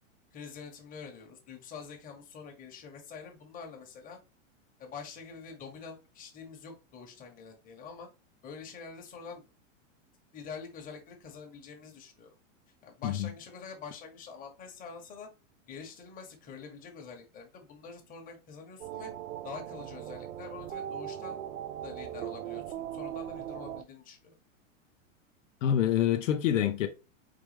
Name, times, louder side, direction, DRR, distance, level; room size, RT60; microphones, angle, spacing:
voice 1, 0.3-4.2 4.8-8.1 8.4-9.4 10.3-12.3 12.8-15.3 15.7-19.1 19.4-21.4 21.8-24.3, left 5 dB, 20° left, 1.4 m, -46 dB
sound 1, 18.8-23.8, right 11 dB, 90° right, 0.6 m, -39 dB
voice 2, 25.6-26.9, left 10 dB, 75° left, 0.8 m, -26 dB
4.9 x 3.2 x 3.3 m
supercardioid pair, 145°, 38 cm